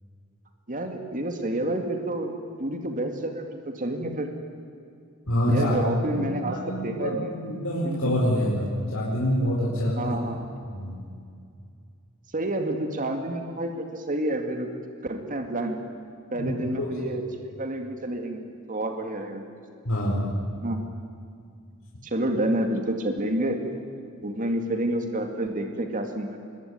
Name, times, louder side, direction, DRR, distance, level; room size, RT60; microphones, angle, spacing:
voice 1, 0.7-2.3 2.6-4.3 5.4-7.3 7.8-8.4 10.0-10.6 12.3-14.7 15.0-15.8 16.3-18.4 18.7-19.4 20.6-20.8 22.0-23.6 24.2-26.4, right 1 dB, 40° right, 4 dB, 2.3 m, -29 dB
voice 2, 5.3-5.8 6.1-10.2 10.7-11.0 16.3-17.2 19.8-20.3, equal, 75° left, -4 dB, 4.7 m, -26 dB
24.5 x 21.5 x 9.6 m, 2.3 s
head